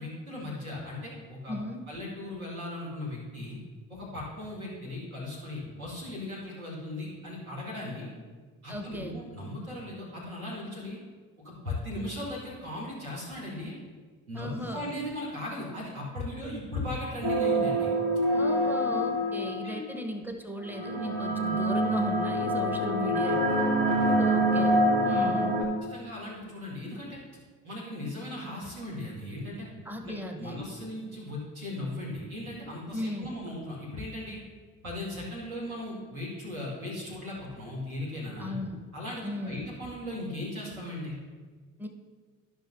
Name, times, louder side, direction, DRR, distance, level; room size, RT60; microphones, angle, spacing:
voice 1, 0.0-1.6 1.9-3.6 3.9-8.1 8.6-11.0 11.4-13.8 14.3-17.9 19.6-19.8 23.8-24.2 25.1-25.3 25.8-27.2 27.6-29.7 30.0-34.4 34.8-38.5 38.9-41.2, left 1 dB, 80° right, -6 dB, 2.3 m, -37 dB
voice 2, 1.5-1.8 8.7-9.1 14.3-14.9 18.3-23.6 24.2-25.6 29.9-30.6 32.9-33.4 38.4-38.8 39.2-39.7 41.8-41.9, left 1 dB, 5° right, 4 dB, 1.1 m, -36 dB
sound 1, 17.2-19.7 20.6-25.6, right 1 dB, 60° right, 2.1 m, -26 dB
14.0 x 6.0 x 2.7 m, 1.5 s
figure-of-eight pair, 50°, 42 cm